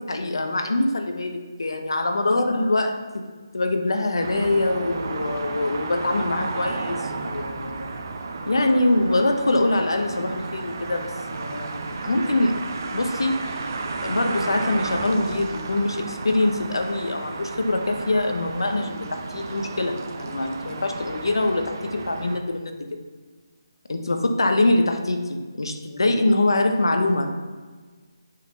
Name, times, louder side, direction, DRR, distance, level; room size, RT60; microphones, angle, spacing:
voice 1, 0.1-7.9 8.5-12.6 12.9-13.6 14.0-23.0 23.9-27.5, left 2 dB, 80° left, 6 dB, 0.9 m, -24 dB
sound 1, 4.2-22.4, right 3 dB, 40° right, 0.8 m, -33 dB
7.5 x 3.9 x 5.5 m, 1.4 s
figure-of-eight pair, 160°, 2 cm